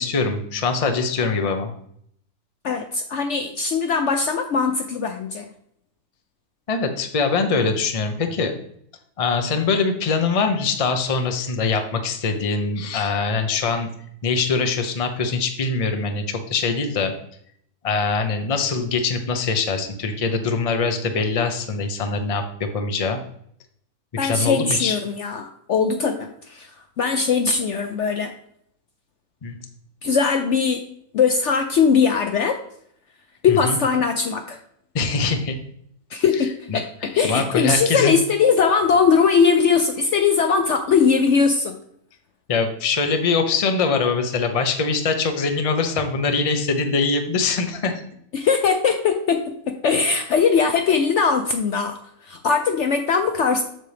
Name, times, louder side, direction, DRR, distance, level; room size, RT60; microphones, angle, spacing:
voice 1, 0.0-1.7 6.7-8.5 9.2-13.9 14.2-17.1 17.8-23.2 24.2-25.0 29.4-29.5 33.5-33.8 34.9-35.6 36.7-36.8 37.2-38.2 42.5-48.0, left 4 dB, 30° left, 6 dB, 0.7 m, -23 dB
voice 2, 2.6-5.5 24.2-28.3 30.0-30.8 31.1-32.6 33.4-34.6 36.1-41.8 48.3-52.0 52.2-53.6, left 5 dB, 65° left, 6 dB, 0.8 m, -20 dB
7.4 x 6.8 x 3.3 m, 0.68 s
omnidirectional pair, 1.6 m